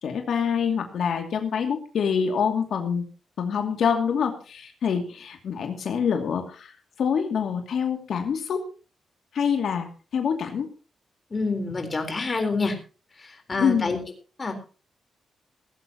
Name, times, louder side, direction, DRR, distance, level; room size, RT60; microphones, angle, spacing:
voice 1, 0.0-3.1 3.4-8.6 9.3-9.9 10.1-10.7 13.6-14.1, left 7 dB, 70° left, 4 dB, 2.6 m, -26 dB
voice 2, 11.3-12.8 13.2-14.0 14.4-14.5, left 3 dB, 25° left, 5 dB, 4.1 m, -27 dB
18.0 x 16.0 x 3.0 m, 0.35 s
wide cardioid pair, 145°, 0 cm